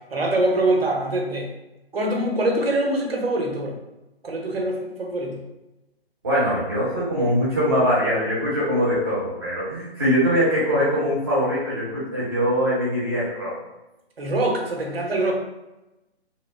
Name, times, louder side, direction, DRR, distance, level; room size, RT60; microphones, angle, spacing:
voice 1, 0.1-1.5 1.9-3.8 4.2-5.4 14.2-15.3, right 1 dB, 65° right, 1 dB, 0.7 m, -24 dB
voice 2, 6.2-13.5, equal, 25° right, -8 dB, 0.7 m, -22 dB
2.7 x 2.1 x 2.2 m, 0.98 s
figure-of-eight pair, 140°, 32 cm